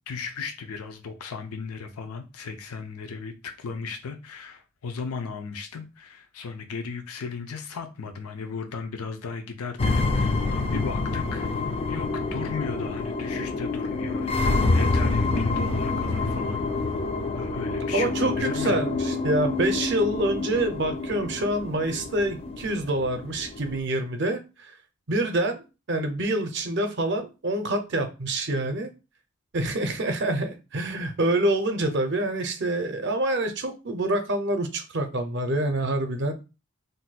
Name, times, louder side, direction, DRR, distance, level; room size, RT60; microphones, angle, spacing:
voice 1, 0.1-16.6 17.3-18.9 21.9-22.0, left 5 dB, 85° left, 0.5 m, -36 dB
sound 1, 9.8-23.8, left 3 dB, 25° left, 0.3 m, -27 dB
voice 2, 17.9-24.7 25.1-25.6 25.9-28.9 29.5-36.3, right 1 dB, 50° right, 0.6 m, -26 dB
2.6 x 2.2 x 4.0 m
head